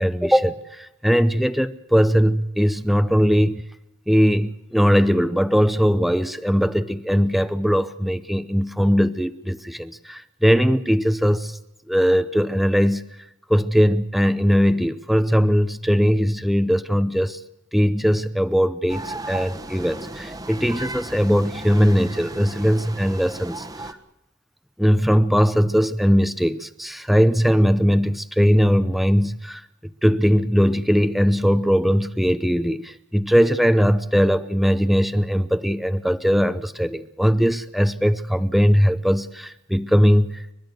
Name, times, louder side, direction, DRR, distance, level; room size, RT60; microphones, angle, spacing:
voice 1, 0.0-3.6 4.1-11.6 11.9-13.0 13.5-17.4 17.7-24.0 24.8-29.6 30.0-40.5, equal, ahead, 12 dB, 0.7 m, -20 dB
sound 1, 18.9-23.9, right 2 dB, 20° right, 1.2 m, -35 dB
29.5 x 13.0 x 8.0 m, 0.91 s
head